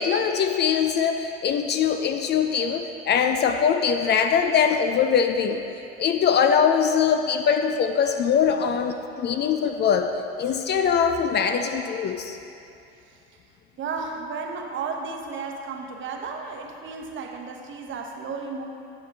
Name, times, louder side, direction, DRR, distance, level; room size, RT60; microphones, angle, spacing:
voice 1, 0.0-5.7 6.0-10.1 10.4-12.4, left 7 dB, 35° left, 6 dB, 0.4 m, -22 dB
voice 2, 13.8-18.7, right 4 dB, 40° right, 2 dB, 0.9 m, -33 dB
10.0 x 5.0 x 3.4 m, 2.8 s
hypercardioid pair, 75°, 30 cm